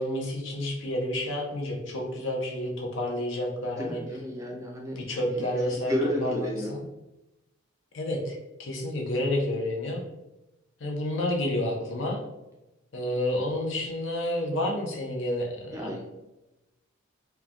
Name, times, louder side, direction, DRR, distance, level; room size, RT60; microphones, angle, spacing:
voice 1, 0.0-4.0 5.0-6.8 7.9-10.0 10.8-12.2 12.9-16.0, left 1 dB, 70° left, 0 dB, 0.6 m, -30 dB
voice 2, 3.8-6.7 15.7-16.0, equal, 15° right, -1 dB, 0.4 m, -32 dB
3.0 x 2.2 x 2.4 m, 0.97 s
head